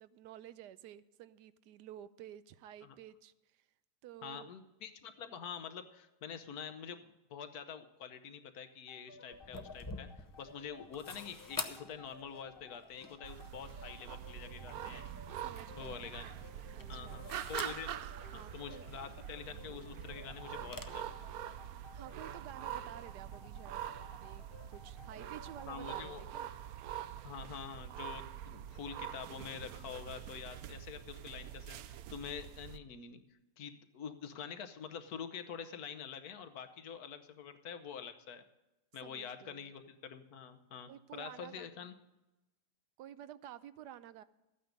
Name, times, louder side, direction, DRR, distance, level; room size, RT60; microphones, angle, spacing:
voice 1, 0.0-3.7 4.0-4.5 15.4-16.1 16.7-17.3 17.6-17.8 18.3-18.9 21.9-23.8 24.2-26.5 39.0-39.7 40.9-41.9 43.0-44.2, right 11 dB, 90° right, 15 dB, 1.2 m, -52 dB
voice 2, 4.2-15.1 15.8-16.4 16.9-17.9 18.3-21.3 25.7-26.2 27.2-33.2 33.6-38.4 38.9-41.9, left 7 dB, 70° left, 8 dB, 1.4 m, -46 dB
sound 1, 8.9-26.3, left 5 dB, 45° left, 0.9 m, -57 dB
sound 2, 9.3-20.8, left 2 dB, 25° left, 0.4 m, -49 dB
sound 3, 13.2-32.8, right 10 dB, 70° right, 1.0 m, -45 dB
13.5 x 9.2 x 5.2 m, 1.0 s
omnidirectional pair, 1.7 m